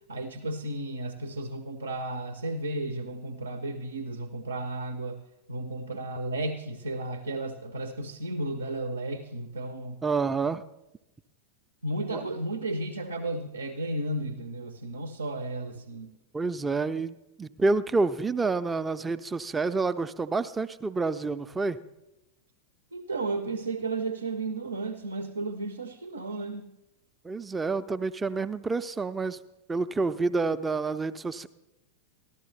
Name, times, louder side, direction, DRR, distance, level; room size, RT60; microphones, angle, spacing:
voice 1, 0.1-5.2 5.5-10.0 11.8-16.1 22.9-26.7, right 2 dB, 75° right, 8 dB, 0.6 m, -33 dB
voice 2, 10.0-10.6 12.1-12.2 16.3-21.8 27.2-29.4 29.7-31.5, right 3 dB, 15° right, 12 dB, 0.4 m, -28 dB
14.5 x 12.0 x 3.3 m, 0.94 s
figure-of-eight pair, 90°, 0 cm